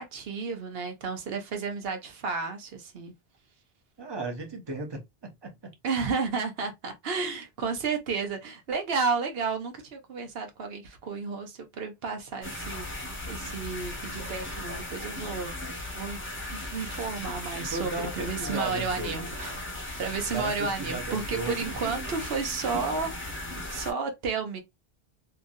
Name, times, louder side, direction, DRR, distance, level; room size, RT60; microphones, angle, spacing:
voice 1, 0.0-3.1 5.8-15.5 15.9-16.2 16.5-19.6 20.0-24.6, right 4 dB, 70° right, 1.0 m, -32 dB
voice 2, 4.0-5.7 17.7-19.3 20.3-22.1, right 2 dB, 25° right, 0.8 m, -36 dB
sound 1, 12.4-23.9, left 1 dB, 15° left, 0.9 m, -37 dB
2.9 x 2.6 x 2.6 m
omnidirectional pair, 1.0 m